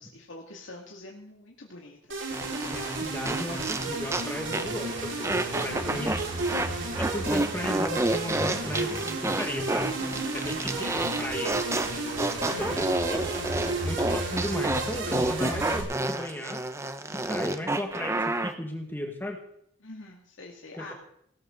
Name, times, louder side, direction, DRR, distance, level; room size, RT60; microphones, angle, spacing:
voice 1, 0.0-2.2 5.7-6.1 12.4-12.9 19.8-20.9, left 2 dB, 70° left, -1 dB, 2.4 m, -45 dB
sound 1, 2.1-15.8, right 2 dB, 70° right, 4.9 m, -32 dB
sound 2, 2.3-4.3 4.5-4.8 5.2-6.7 6.9-18.5, right 2 dB, 15° right, 0.9 m, -29 dB
voice 2, 2.7-6.1 7.0-9.9 10.3-12.1 12.5-13.5 13.8-16.6 17.2-19.4 20.8-20.9, left 1 dB, 10° left, 3 dB, 1.9 m, -36 dB
18.5 x 13.5 x 4.0 m, 0.69 s
head